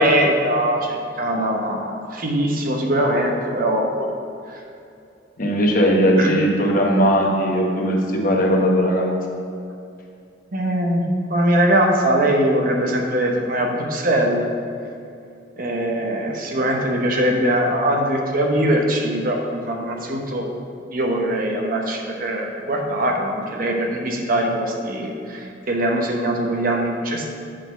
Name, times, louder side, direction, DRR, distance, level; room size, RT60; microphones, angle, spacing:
voice 1, 0.0-4.1 6.2-6.4 10.5-11.0 11.3-14.5 15.6-20.5 20.9-27.3, right 1 dB, 50° right, 1 dB, 0.9 m, -21 dB
voice 2, 5.4-9.1, equal, 50° left, -1 dB, 1.1 m, -18 dB
7.7 x 4.0 x 5.9 m, 2.5 s
head